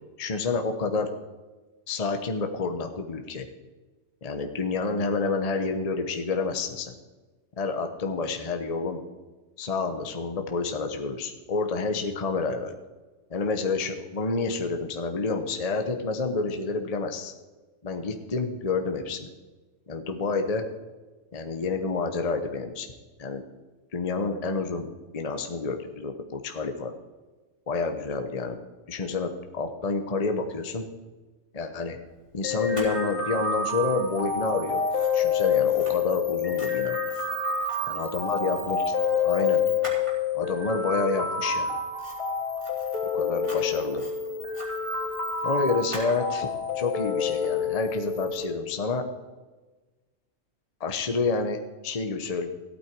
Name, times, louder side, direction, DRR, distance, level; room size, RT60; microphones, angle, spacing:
voice 1, 0.2-1.1 1.9-3.5 4.2-7.0 7.6-9.0 9.6-12.8 13.3-17.3 17.8-19.3 19.9-20.6 21.3-22.9 23.2-23.4 23.9-24.9 25.1-26.9 27.7-28.6 28.9-30.8 31.5-32.0 32.3-34.9 35.1-37.0 37.9-38.9 39.2-39.6 40.3-41.7 43.1-44.0 45.4-49.0 50.8-52.5, left 4 dB, 30° left, 5 dB, 1.0 m, -29 dB
sound 1, 32.4-48.4, left 6 dB, 70° left, 3.7 m, -28 dB
Camera, 32.7-48.4, equal, 20° right, 3.6 m, -44 dB
15.0 x 8.7 x 4.6 m, 1.2 s
omnidirectional pair, 1.4 m